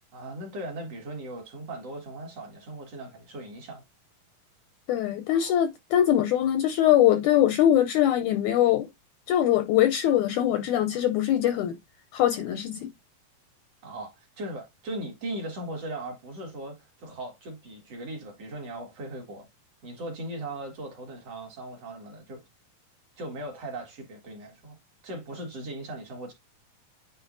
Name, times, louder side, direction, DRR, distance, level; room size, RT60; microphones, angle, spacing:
voice 1, 0.1-3.8 13.8-19.5 19.8-22.4 23.2-24.8 25.0-26.3, right 1 dB, 50° right, 2.5 m, -38 dB
voice 2, 4.9-8.9 9.3-11.8 12.1-12.9, left 11 dB, 80° left, 1.8 m, -22 dB
9.6 x 4.1 x 2.6 m
omnidirectional pair, 4.1 m